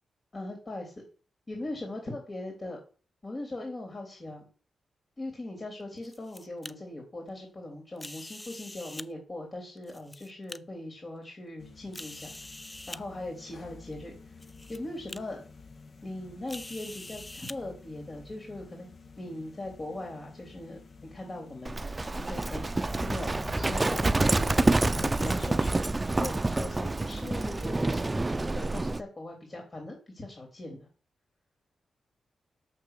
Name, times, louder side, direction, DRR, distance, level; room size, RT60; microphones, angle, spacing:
voice 1, 0.3-0.9 1.5-2.8 3.2-4.5 5.2-12.3 12.9-14.4 14.7-15.4 16.0-22.6 23.0-25.9 26.2-30.9, left 1 dB, 45° left, 1 dB, 3.5 m, -40 dB
sound 1, 5.8-6.7 8.0-9.1 9.8-10.6 11.2-11.3 11.9-13.0 13.9-14.0 14.4-14.8 15.1-15.2 16.5-17.6, left 2 dB, 25° left, 0.5 m, -44 dB
sound 2, 11.6-25.8, left 4 dB, 60° left, 1.2 m, -48 dB
Livestock farm animals working animals, 21.6-29.0, right 2 dB, 30° right, 0.6 m, -27 dB
6.7 x 6.5 x 6.7 m, 0.39 s
supercardioid pair, 45°, 0 cm